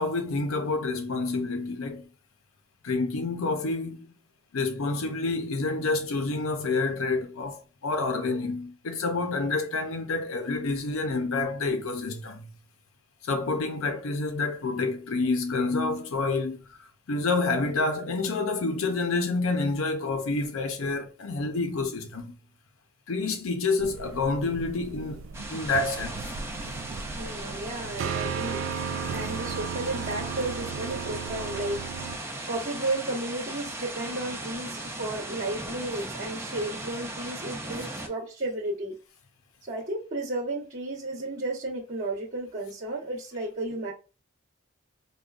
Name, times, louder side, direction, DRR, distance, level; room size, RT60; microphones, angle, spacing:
voice 1, 0.0-2.1 2.8-4.1 4.5-12.5 13.2-22.3 23.1-25.2 25.5-26.3, left 3 dB, 85° left, 0.6 m, -28 dB
sound 1, 23.8-32.2, right 6 dB, 70° right, 0.3 m, -36 dB
sound 2, 25.3-38.1, right 2 dB, 15° right, 0.5 m, -38 dB
voice 2, 27.1-28.6 29.1-31.8 32.3-38.9 39.7-43.9, right 2 dB, 35° right, 1.0 m, -33 dB
5.0 x 2.2 x 2.4 m
head